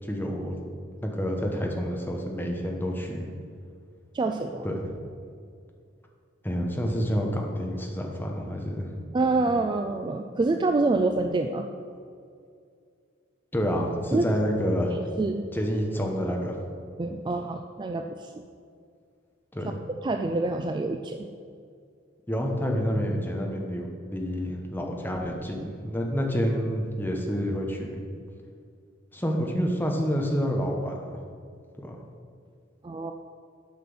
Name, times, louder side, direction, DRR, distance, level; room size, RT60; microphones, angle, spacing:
voice 1, 0.0-0.6 1.0-3.3 4.6-4.9 6.4-8.9 13.5-15.0 15.5-16.6 19.5-19.8 22.3-28.0 29.1-31.1 31.8-32.0, equal, 10° left, 1 dB, 1.0 m, -28 dB
voice 2, 4.1-4.7 9.1-11.7 14.1-14.3 14.9-15.5 17.0-18.3 20.0-21.3 32.8-33.1, right 3 dB, 25° right, 6 dB, 0.3 m, -26 dB
8.4 x 5.9 x 6.1 m, 2.3 s
head